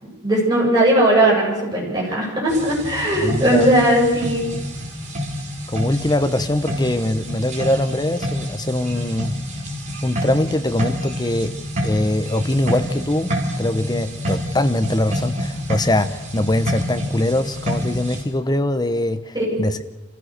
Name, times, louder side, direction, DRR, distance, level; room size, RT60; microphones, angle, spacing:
voice 1, 0.0-4.5 19.3-19.6, right 1 dB, 20° right, -4 dB, 7.8 m, -18 dB
sound 1, 2.5-18.2, equal, 40° right, 4.4 m, -28 dB
voice 2, 3.2-3.7 5.7-9.4 10.0-11.5 11.8-13.3 13.6-19.3 19.6-19.8, left 1 dB, 20° left, 10 dB, 0.9 m, -22 dB
26.0 x 15.5 x 6.7 m, 1.1 s
head